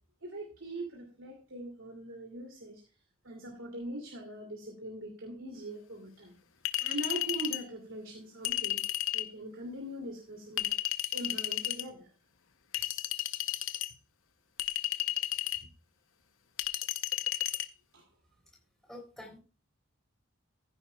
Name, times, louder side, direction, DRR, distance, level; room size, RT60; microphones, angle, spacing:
voice 1, 0.2-2.8 3.2-6.3 6.8-8.8 9.1-10.7 11.1-12.1 17.9-18.0, right 1 dB, 70° right, 1 dB, 2.6 m, -41 dB
Chink clink, 6.7-7.6 8.4-9.3 10.6-11.8 12.7-13.9 14.6-15.6 16.6-17.7, left 14 dB, 65° left, 0.7 m, -33 dB
voice 2, 18.8-19.4, left 1 dB, ahead, 0 dB, 3.6 m, -47 dB
15.0 x 10.0 x 2.3 m, 0.35 s
head